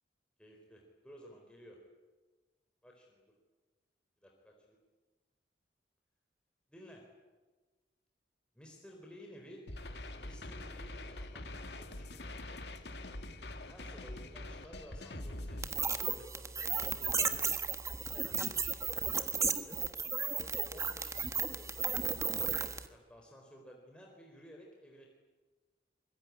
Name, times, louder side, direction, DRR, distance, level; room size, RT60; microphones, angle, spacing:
voice 1, 0.4-1.8 2.8-3.2 4.2-4.8 6.7-7.1 8.5-9.7 10.1-12.8 13.7-17.5 18.1-21.9 22.3-25.1, equal, 5° left, 0 dB, 4.3 m, -55 dB
sound 1, 9.7-15.7, left 1 dB, 75° left, 2.3 m, -44 dB
sound 2, 15.6-22.9, right 5 dB, 20° right, 1.5 m, -34 dB
25.0 x 22.0 x 9.8 m, 1.3 s
head